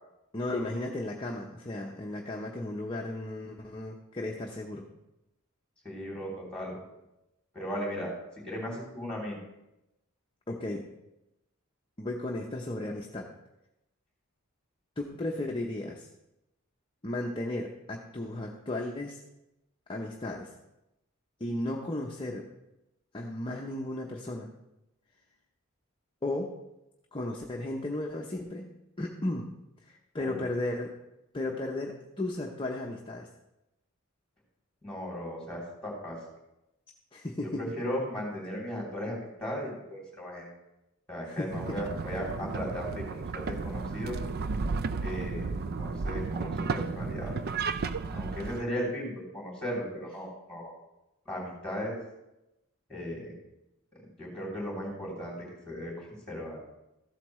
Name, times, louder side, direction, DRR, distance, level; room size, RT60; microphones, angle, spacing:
voice 1, 0.3-4.9 10.5-10.9 12.0-13.3 15.0-16.1 17.0-19.2 19.9-20.5 21.4-22.5 23.1-24.5 26.2-26.5 27.1-28.7 29.0-29.5 29.8-30.9 31.3-33.3 37.1-37.6 41.2-41.8, left 1 dB, 25° left, -1 dB, 0.7 m, -35 dB
voice 2, 5.8-6.7 7.5-8.1 8.4-9.4 30.2-30.4 34.8-36.2 37.4-40.5 41.1-44.2 45.0-47.3 48.1-50.7 51.2-51.9 52.9-53.3 54.2-55.3 55.6-56.6, equal, 5° left, -3 dB, 3.2 m, -36 dB
sound 1, 41.5-48.6, right 4 dB, 45° right, 0.4 m, -33 dB
14.0 x 8.2 x 3.1 m, 0.92 s
head